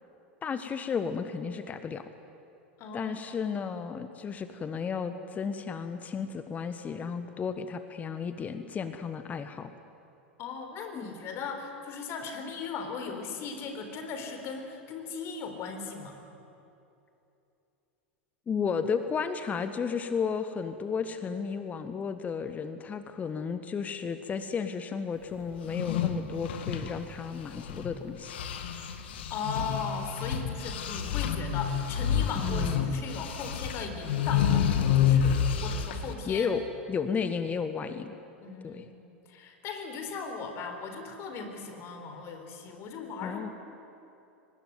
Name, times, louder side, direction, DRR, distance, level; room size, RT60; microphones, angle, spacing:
voice 1, 0.4-2.0 2.9-9.7 10.9-11.1 18.5-28.4 32.4-32.9 36.3-36.6 36.9-38.1 38.6-38.8 43.2-43.5, left 6 dB, 25° left, 10 dB, 1.3 m, -33 dB
voice 2, 2.8-3.1 10.4-16.2 29.3-36.6 38.4-38.9 39.3-43.5, left 5 dB, 40° left, 6 dB, 3.9 m, -38 dB
sound 1, 25.6-27.9 28.2-36.1, left 8 dB, 65° left, 1.9 m, -29 dB
23.5 x 19.5 x 9.5 m, 2.8 s
figure-of-eight pair, 90°, 6 cm